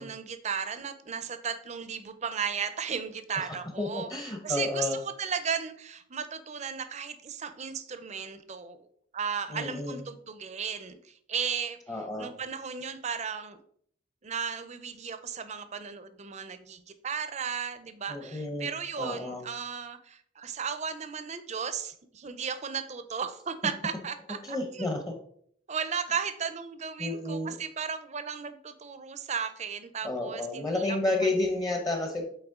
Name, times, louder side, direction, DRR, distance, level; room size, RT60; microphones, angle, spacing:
voice 1, 0.0-8.9 9.1-11.8 12.2-13.6 14.2-24.9 25.7-31.3, right 6 dB, 35° right, 11 dB, 0.5 m, -35 dB
voice 2, 3.8-5.0 9.5-10.0 11.9-12.3 18.1-18.7 19.0-19.4 24.4-25.1 27.0-27.6 30.0-32.3, left 2 dB, 20° left, 3 dB, 0.8 m, -31 dB
7.9 x 4.2 x 3.6 m, 0.65 s
head